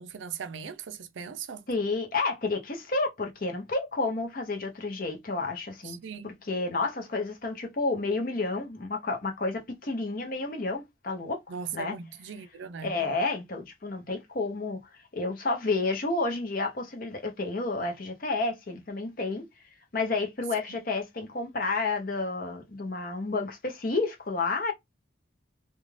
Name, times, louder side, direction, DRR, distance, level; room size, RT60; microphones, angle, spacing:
voice 1, 0.0-1.6 6.0-6.3 11.5-12.9, right 6 dB, 80° right, 0.4 m, -39 dB
voice 2, 1.7-11.4 11.7-12.0 12.8-14.8 15.1-19.5 19.9-24.7, left 3 dB, 45° left, 0.7 m, -30 dB
2.5 x 2.3 x 3.1 m
head